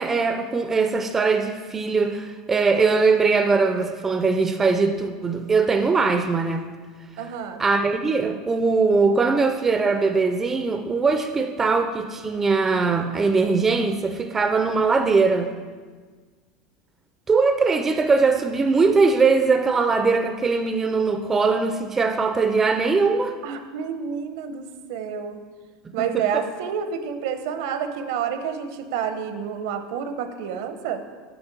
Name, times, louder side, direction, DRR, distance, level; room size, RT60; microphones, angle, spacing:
voice 1, 0.0-6.6 7.6-15.5 17.3-23.3 26.0-26.2, right 4 dB, 15° right, 7 dB, 0.4 m, -21 dB
voice 2, 7.2-7.6 23.4-25.4 25.9-31.0, right 7 dB, 70° right, 9 dB, 0.7 m, -29 dB
7.8 x 5.1 x 5.9 m, 1.5 s
cardioid pair, 165°, 2 cm